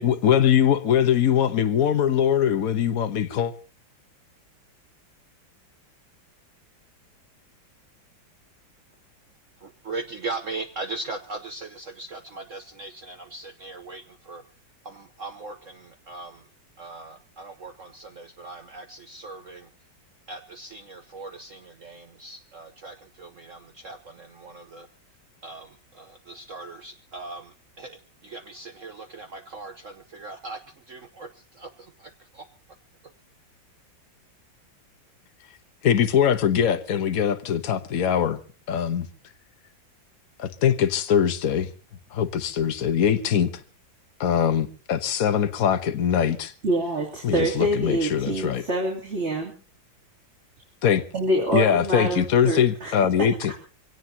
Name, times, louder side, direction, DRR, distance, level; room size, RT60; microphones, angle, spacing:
voice 1, 0.0-3.5 35.8-38.4 38.7-39.1 40.4-41.7 42.1-43.5 44.2-46.5 47.2-48.6 50.8-51.0 51.5-53.5, left 8 dB, 50° left, 1.4 m, -22 dB
voice 2, 9.6-14.4 14.8-16.5 16.8-19.7 20.3-24.9 25.4-30.6 30.9-32.5, right 3 dB, 50° right, 1.1 m, -39 dB
voice 3, 46.6-49.5 51.1-52.9, right 1 dB, 35° right, 3.3 m, -26 dB
24.5 x 17.5 x 2.8 m
omnidirectional pair, 2.1 m